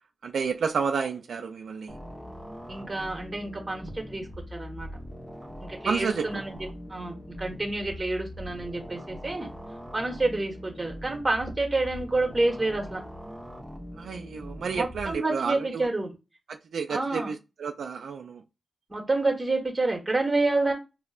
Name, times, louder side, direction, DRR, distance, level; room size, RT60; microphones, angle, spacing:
voice 1, 0.2-1.9 5.9-6.4 14.0-15.9 16.5-18.4, right 5 dB, 80° right, 0.3 m, -30 dB
sound 1, 1.9-15.1, equal, 20° left, 1.0 m, -42 dB
voice 2, 2.7-4.2 4.5-4.9 5.6-6.6 6.9-9.5 9.9-13.0 14.7-16.1 16.9-17.3 18.9-20.7, right 2 dB, 25° right, 1.2 m, -28 dB
4.1 x 2.1 x 2.4 m
cardioid pair, 75°, 0 cm